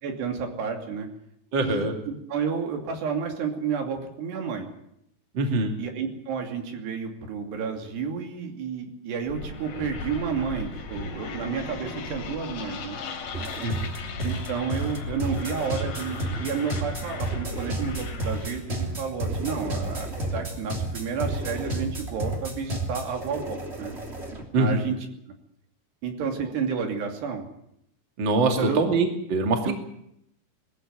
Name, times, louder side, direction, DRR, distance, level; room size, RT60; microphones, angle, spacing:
voice 1, 0.0-1.1 1.6-4.7 5.8-13.0 14.2-24.0 24.6-25.0 25.3-25.4 26.0-27.5 28.4-28.8 29.6-29.8, right 6 dB, 75° right, 3 dB, 4.8 m, -31 dB
voice 2, 1.5-1.9 5.3-5.8 13.6-13.9 24.5-24.8 28.2-29.7, right 3 dB, 35° right, 3 dB, 2.6 m, -24 dB
sound 1, 9.3-18.7, left 3 dB, 80° left, 5.2 m, -37 dB
sound 2, 13.3-24.4, right 1 dB, 15° right, 2.8 m, -31 dB
21.0 x 14.5 x 9.5 m, 0.77 s
omnidirectional pair, 4.8 m